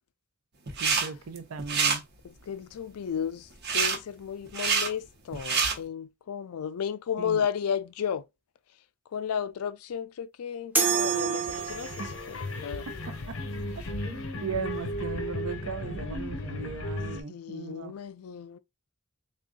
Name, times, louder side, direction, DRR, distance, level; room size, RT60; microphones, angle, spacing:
sound 1, 0.7-1.1 1.4-2.0 3.6-4.0 4.5-4.9 5.3-5.7, right 5 dB, 50° right, 0.9 m, -26 dB
voice 1, 0.8-2.0 7.2-7.4 12.0-12.1 12.9-13.4 13.7-13.8 14.4-17.9, right 5 dB, 75° right, 0.6 m, -37 dB
voice 2, 2.2-8.2 9.1-12.9 17.3-18.6, left 8 dB, 85° left, 0.4 m, -33 dB
sound 2, 10.8-12.3, right 6 dB, 10° right, 0.6 m, -27 dB
sound 3, 10.9-17.2, left 1 dB, 65° left, 0.7 m, -36 dB
3.7 x 2.3 x 3.7 m
head